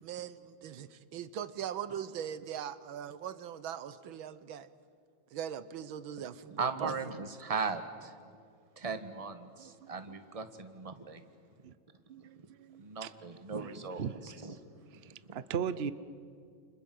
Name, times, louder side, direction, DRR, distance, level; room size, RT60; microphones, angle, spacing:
voice 1, 0.0-4.7 5.3-6.9 9.6-9.9 12.1-12.8, right 9 dB, 75° right, 15 dB, 1.7 m, -41 dB
voice 2, 6.6-8.1 8.8-11.2 12.4-12.5 12.8-14.6 15.3-15.4, right 4 dB, 20° right, 9 dB, 1.3 m, -38 dB
voice 3, 15.0-15.9, right 7 dB, 90° right, 14 dB, 0.5 m, -35 dB
29.0 x 26.5 x 7.8 m, 2.3 s
omnidirectional pair, 2.3 m